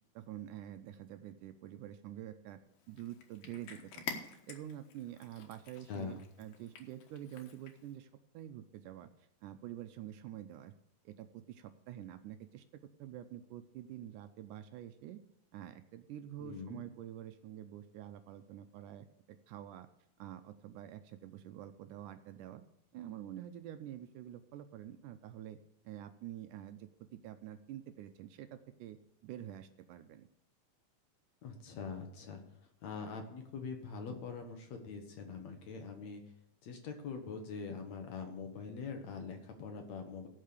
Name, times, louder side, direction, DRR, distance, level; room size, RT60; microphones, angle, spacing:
voice 1, 0.2-2.6 2.9-4.2 4.5-10.7 11.1-15.2 15.5-19.9 20.2-22.6 22.9-25.6 25.8-29.0 29.2-30.3, right 11 dB, 80° right, 9 dB, 2.0 m, -47 dB
Cat, 2.7-8.0, left 6 dB, 80° left, 3.0 m, -49 dB
voice 2, 16.4-16.8 31.4-36.2 36.6-40.3, left 5 dB, 60° left, 5 dB, 2.2 m, -43 dB
16.0 x 5.6 x 6.7 m, 0.75 s
omnidirectional pair, 3.9 m